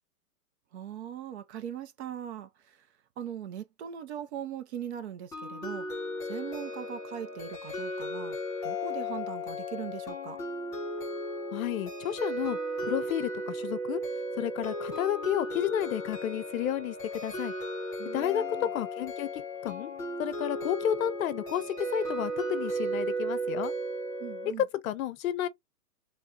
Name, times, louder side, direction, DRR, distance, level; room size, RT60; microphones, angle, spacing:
voice 1, 0.7-2.8 3.2-5.9 6.2-8.4 8.6-10.4 18.0-18.7 24.2-24.7, right 9 dB, 45° right, 0.7 m, -40 dB
sound 1, 5.3-24.5, equal, 5° left, 0.5 m, -35 dB
voice 2, 11.5-14.0 14.4-16.9 17.2-17.5 18.1-19.9 20.2-23.7 24.8-25.5, left 11 dB, 60° left, 0.8 m, -31 dB
3.4 x 2.6 x 3.6 m
hypercardioid pair, 150°, 48 cm